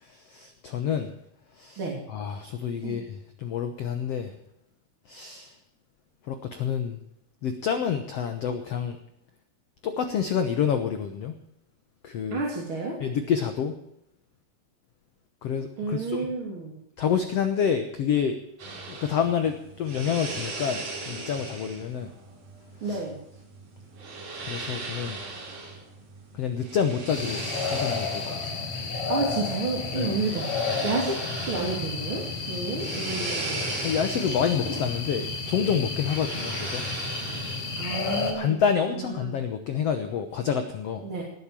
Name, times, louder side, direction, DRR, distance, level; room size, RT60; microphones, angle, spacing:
voice 1, 0.0-1.1 1.6-1.8 2.1-4.3 5.1-5.5 6.3-7.0 7.4-9.0 9.8-11.3 12.0-12.4 13.0-13.7 15.4-16.3 17.0-18.4 18.9-22.1 22.8-23.0 24.4-25.2 26.3-27.4 27.7-28.5 29.9-30.1 33.8-36.8 38.3-41.0, left 7 dB, 80° left, 8 dB, 1.4 m, -28 dB
voice 2, 12.3-13.0 15.8-16.8 22.8-23.2 29.1-30.5 30.8-33.7 37.8-38.6 38.9-39.4 41.0-41.2, right 3 dB, 35° right, -2 dB, 3.4 m, -31 dB
sound 1, 18.6-37.9, right 3 dB, 55° right, 4.9 m, -38 dB
sound 2, 27.1-38.3, left 4 dB, 45° left, 4.4 m, -32 dB
18.5 x 8.7 x 7.5 m, 0.76 s
omnidirectional pair, 4.5 m